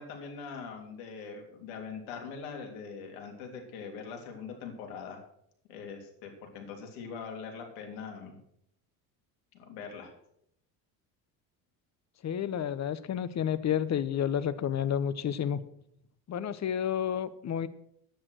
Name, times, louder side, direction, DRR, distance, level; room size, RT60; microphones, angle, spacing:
voice 1, 0.0-5.2 5.7-8.4 9.5-10.1, left 5 dB, 80° left, 3 dB, 3.2 m, -42 dB
voice 2, 12.2-15.6 16.3-17.7, left 9 dB, 35° left, 15 dB, 1.0 m, -30 dB
10.0 x 9.0 x 6.4 m, 0.72 s
supercardioid pair, 85°, 47 cm